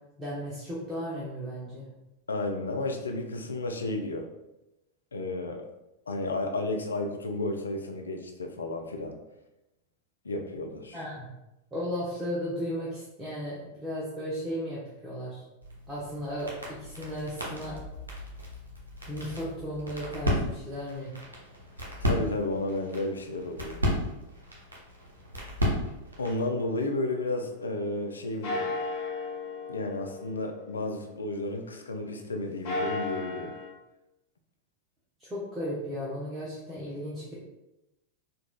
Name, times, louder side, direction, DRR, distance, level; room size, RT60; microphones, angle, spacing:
voice 1, 0.2-1.9 10.9-11.3 11.7-15.4 15.9-17.8 19.1-21.1 35.2-37.3, equal, 15° right, -7 dB, 0.7 m, -35 dB
voice 2, 2.3-4.3 5.1-5.6 6.1-9.2 10.2-11.0 22.0-23.8 26.2-28.7 29.7-33.5, left 2 dB, 75° left, 4 dB, 0.3 m, -32 dB
sound 1, 15.6-26.5, left 1 dB, 75° right, 0.8 m, -34 dB
sound 2, 26.3-28.0 28.4-32.0 32.4-33.7, left 2 dB, 50° left, 1.2 m, -37 dB
3.9 x 2.3 x 2.2 m, 0.93 s
figure-of-eight pair, 90°, 0 cm